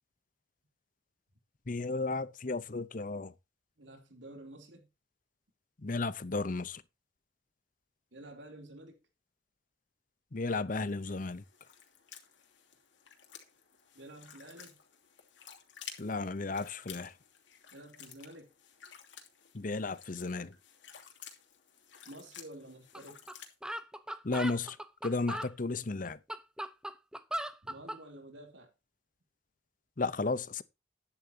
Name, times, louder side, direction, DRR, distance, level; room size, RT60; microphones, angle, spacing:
voice 1, 1.7-3.3 5.8-6.8 10.3-11.4 16.0-17.1 19.5-20.5 24.2-24.8 25.0-26.2 30.0-30.6, left 3 dB, 45° left, 0.8 m, -34 dB
voice 2, 3.8-4.9 8.1-9.0 13.9-14.8 17.7-18.5 22.0-23.2 27.6-28.7, right 1 dB, 80° right, 3.3 m, -50 dB
Slow Water Footsteps, 10.9-23.5, left 8 dB, 85° left, 2.8 m, -53 dB
sound 1, 22.9-23.0 23.3-23.4 23.6-25.5 26.1-28.0, right 1 dB, 5° right, 0.7 m, -38 dB
12.0 x 10.5 x 2.8 m
head